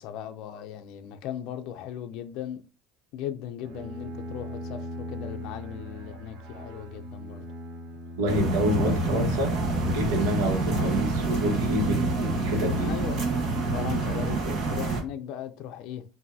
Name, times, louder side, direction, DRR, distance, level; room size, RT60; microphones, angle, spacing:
voice 1, 0.0-2.6 3.1-7.4 8.8-9.3 9.6-9.8 10.7-10.9 12.8-13.3 13.7-16.0, left 10 dB, 60° left, 0.4 m, -37 dB
Bowed string instrument, 3.6-9.4, equal, 65° right, 1.0 m, -40 dB
voice 2, 8.2-9.5 9.8-13.0, equal, 80° right, 1.3 m, -27 dB
sound 1, 8.3-15.0, right 3 dB, 45° right, 1.3 m, -27 dB
5.3 x 2.6 x 2.7 m
cardioid pair, 140°, 0 cm